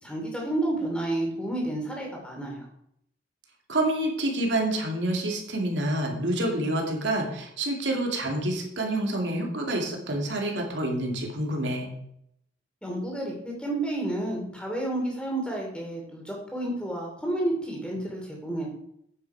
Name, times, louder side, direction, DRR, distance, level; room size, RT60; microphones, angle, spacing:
voice 1, 0.0-2.6 12.8-18.7, right 1 dB, 5° left, -1 dB, 2.8 m, -30 dB
voice 2, 3.7-11.9, right 1 dB, 80° right, 1 dB, 2.4 m, -28 dB
9.3 x 8.0 x 4.7 m, 0.72 s
head